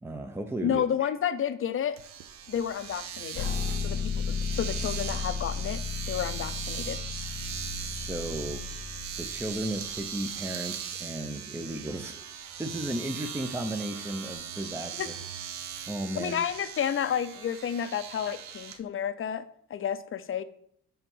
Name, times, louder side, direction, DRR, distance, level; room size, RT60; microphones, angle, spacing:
voice 1, 0.0-1.1 7.8-8.6 9.2-12.3 12.6-15.1 15.9-16.4, right 1 dB, 10° right, 5 dB, 0.6 m, -35 dB
voice 2, 0.6-2.0 2.5-3.5 3.8-5.8 6.1-7.0 15.0-15.1 16.2-20.4, left 8 dB, 45° left, 12 dB, 0.6 m, -31 dB
Domestic sounds home sounds, 2.0-18.8, right 8 dB, 65° right, 0.7 m, -39 dB
sound 1, 3.3-10.3, left 6 dB, 90° left, 0.8 m, -34 dB
5.7 x 4.6 x 5.5 m, 0.68 s
cardioid pair, 90°, 30 cm